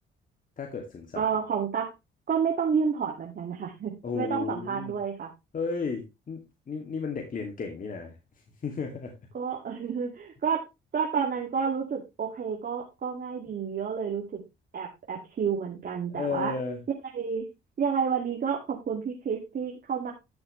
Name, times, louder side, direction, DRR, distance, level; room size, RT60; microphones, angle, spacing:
voice 1, 0.6-1.3 4.0-4.9 5.5-8.2 8.6-9.2 16.1-16.8, left 5 dB, 45° left, 2 dB, 2.5 m, -33 dB
voice 2, 1.1-1.9 2.3-5.3 9.3-10.7 10.9-14.4 14.7-16.5 17.1-17.5 17.8-20.1, right 6 dB, 50° right, -1 dB, 2.4 m, -30 dB
12.5 x 6.9 x 3.2 m, 0.23 s
cardioid pair, 90°, 20 cm